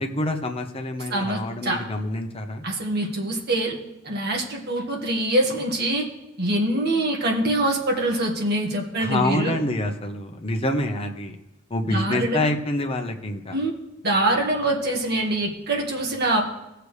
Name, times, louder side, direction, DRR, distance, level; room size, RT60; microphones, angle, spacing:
voice 1, 0.0-2.6 9.0-11.4 11.7-13.6, left 1 dB, 30° left, 4 dB, 1.0 m, -27 dB
voice 2, 1.1-1.8 2.6-3.8 4.0-6.0 6.4-9.5 11.9-12.5 13.5-13.7 14.0-16.4, right 1 dB, 55° right, 0 dB, 1.8 m, -24 dB
17.0 x 6.8 x 3.3 m, 0.96 s
head